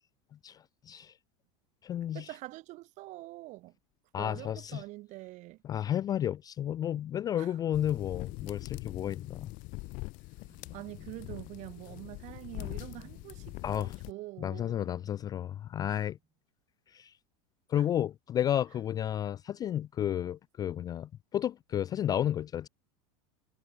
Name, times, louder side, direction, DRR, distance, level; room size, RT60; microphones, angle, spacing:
voice 1, 0.4-1.1 1.8-2.3 4.1-4.8 5.6-9.5 13.6-13.9 14.4-16.2 16.9-17.1 17.7-22.7, left 10 dB, 20° left, 0.3 m, -32 dB
voice 2, 2.1-3.8 4.2-5.6 7.4-7.6 10.7-14.9 15.9-16.1 17.7-17.9, right 19 dB, 45° right, 1.5 m, -45 dB
sound 1, 7.7-14.1, left 24 dB, 50° left, 2.4 m, -43 dB
sound 2, 10.3-16.4, right 5 dB, 15° right, 7.7 m, -63 dB
supercardioid pair, 140°, 17 cm